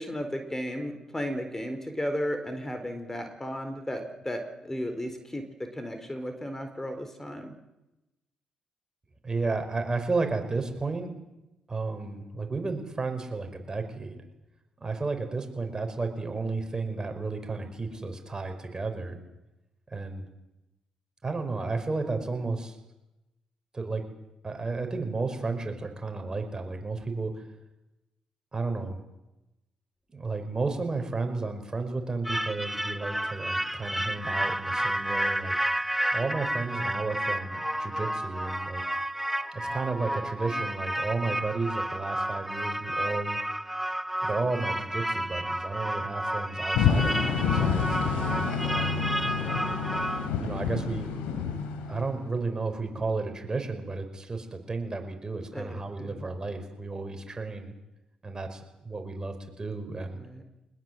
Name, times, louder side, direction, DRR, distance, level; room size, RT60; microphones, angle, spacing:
voice 1, 0.0-7.5 55.5-56.3 60.1-60.4, equal, 15° left, 7 dB, 4.2 m, -34 dB
voice 2, 9.2-11.1 11.7-14.2 14.8-19.2 19.9-20.2 21.2-22.8 23.7-24.0 24.4-27.4 28.5-29.0 30.1-35.5 36.1-38.8 39.5-43.4 44.2-49.1 50.4-51.1 51.9-57.7 58.2-60.2, right 3 dB, 30° right, 6 dB, 5.3 m, -33 dB
sound 1, 32.2-50.3, right 1 dB, 5° right, 1.0 m, -31 dB
sound 2, 46.7-52.4, left 6 dB, 90° left, 3.7 m, -28 dB
22.0 x 20.5 x 7.9 m, 0.96 s
supercardioid pair, 60°, 2 cm